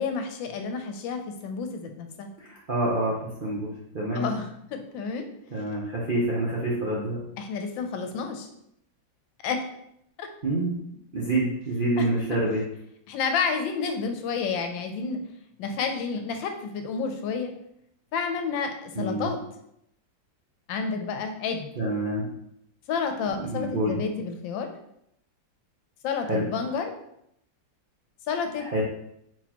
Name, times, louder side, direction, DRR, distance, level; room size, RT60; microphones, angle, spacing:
voice 1, 0.0-2.3 4.1-5.3 7.4-8.5 9.4-9.6 10.2-10.3 12.0-12.1 13.1-15.2 15.6-17.5 18.1-19.4 20.7-21.7 22.9-24.7 26.0-26.9 28.3-28.7, left 5 dB, 80° left, 6 dB, 1.3 m, -30 dB
voice 2, 2.4-4.3 5.5-7.2 10.4-10.7 11.1-12.6 19.0-19.3 21.8-22.2 23.4-23.9 26.3-26.4 28.6-28.8, right 1 dB, 55° right, -5 dB, 0.5 m, -27 dB
4.4 x 4.1 x 2.9 m, 0.76 s
omnidirectional pair, 2.1 m